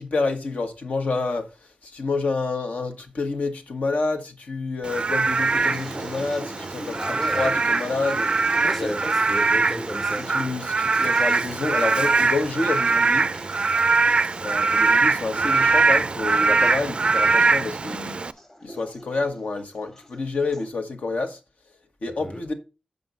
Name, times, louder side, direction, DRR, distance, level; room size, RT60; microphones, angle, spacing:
voice 1, 0.0-1.5 1.8-7.0 7.3-8.3 8.8-8.9 10.3-13.3 14.4-18.2 18.6-21.4 22.0-22.5, left 3 dB, 75° left, 1.5 m, -28 dB
Frog / Rain, 4.8-18.3, right 4 dB, 45° right, 0.4 m, -22 dB
sound 1, 5.3-20.7, equal, 25° left, 1.4 m, -42 dB
voice 2, 7.0-7.6 8.6-10.4 22.1-22.4, equal, 5° left, 0.5 m, -33 dB
7.7 x 5.4 x 5.3 m
wide cardioid pair, 120°, 3 cm